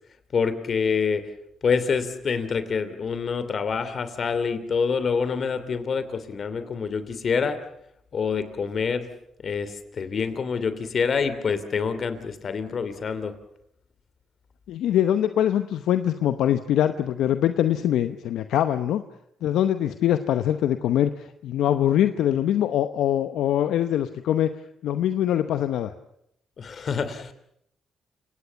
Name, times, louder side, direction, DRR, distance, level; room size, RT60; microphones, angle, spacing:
voice 1, 0.3-1.3 1.6-7.6 8.1-9.1 9.4-13.3 26.6-27.3, left 5 dB, 55° left, 12 dB, 2.8 m, -26 dB
voice 2, 14.7-19.0 19.4-24.5 24.8-25.9, left 11 dB, 80° left, 10 dB, 0.9 m, -23 dB
29.5 x 18.0 x 7.0 m, 0.74 s
supercardioid pair, 60°, 0 cm